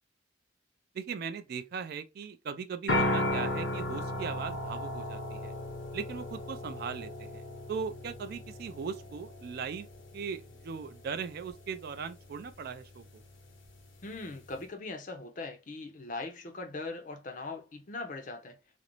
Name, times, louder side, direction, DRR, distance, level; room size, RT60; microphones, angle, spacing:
voice 1, 0.9-5.5 5.9-7.4 7.7-9.9 10.1-13.2, right 6 dB, 50° right, 0.3 m, -39 dB
sound 1, 2.9-14.6, left 1 dB, 75° left, 0.7 m, -37 dB
voice 2, 14.0-18.6, left 3 dB, 40° left, 0.5 m, -40 dB
2.5 x 2.0 x 2.9 m
head